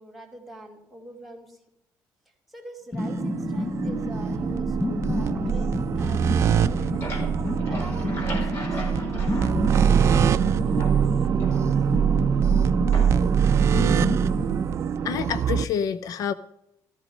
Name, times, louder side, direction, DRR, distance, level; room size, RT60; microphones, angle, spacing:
voice 1, 0.0-1.6 2.3-7.1 7.7-11.7, right 1 dB, ahead, -1 dB, 2.5 m, -45 dB
sound 1, 2.9-15.6, left 2 dB, 20° left, 0.8 m, -30 dB
sound 2, 3.0-15.6, right 8 dB, 45° right, 0.5 m, -23 dB
sound 3, 6.7-10.5 10.8-12.1 12.9-13.4, equal, 40° left, 4.2 m, -38 dB
voice 2, 15.0-16.3, left 8 dB, 60° left, 14 dB, 0.6 m, -27 dB
14.0 x 14.0 x 5.4 m, 0.80 s
cardioid pair, 155°, 7 cm